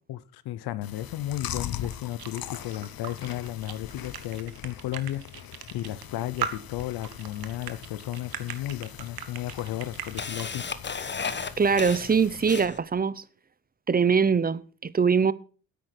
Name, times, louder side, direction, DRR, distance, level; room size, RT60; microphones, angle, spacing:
voice 1, 0.1-5.2 5.7-10.6, left 13 dB, 85° left, 0.8 m, -34 dB
Chewing mastication, 0.8-12.7, left 10 dB, 65° left, 1.1 m, -42 dB
sound 1, 1.6-10.5, right 10 dB, 70° right, 1.5 m, -38 dB
Camera, 8.0-8.1 9.0-9.1 9.5-13.0, left 5 dB, 30° left, 1.1 m, -34 dB
voice 2, 11.6-13.2 13.9-15.3, right 6 dB, 25° right, 0.7 m, -23 dB
10.0 x 8.4 x 6.0 m
cardioid pair, 80°, 38 cm